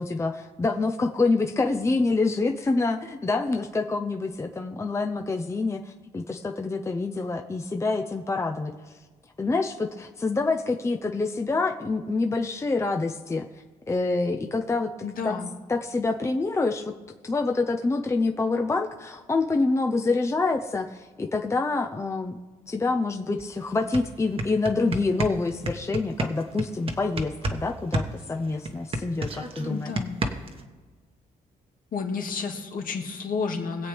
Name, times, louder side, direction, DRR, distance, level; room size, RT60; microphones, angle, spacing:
voice 1, 0.0-8.7 9.4-13.5 13.9-14.9 15.2-15.4 15.7-16.9 17.2-22.4 22.7-29.9, left 3 dB, 20° left, 4 dB, 0.6 m, -26 dB
voice 2, 15.0-15.5 29.7-30.2 31.9-33.9, left 5 dB, 65° left, 2 dB, 1.8 m, -31 dB
sound 1, 23.4-23.5 23.8-27.6 27.9-30.6, right 1 dB, 35° right, 1.2 m, -30 dB
22.0 x 8.1 x 3.5 m, 1.4 s
cardioid pair, 115°, 16 cm